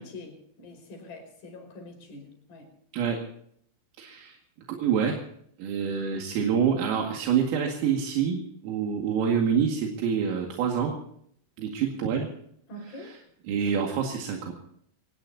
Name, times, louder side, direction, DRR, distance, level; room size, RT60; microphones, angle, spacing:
voice 1, 0.0-2.7 12.7-13.2, left 1 dB, 45° left, 4 dB, 6.6 m, -44 dB
voice 2, 4.0-4.4 4.7-5.2 5.6-10.9 11.6-12.3 13.5-14.5, right 7 dB, 80° right, 1 dB, 4.7 m, -26 dB
25.0 x 20.0 x 2.8 m, 0.67 s
omnidirectional pair, 5.9 m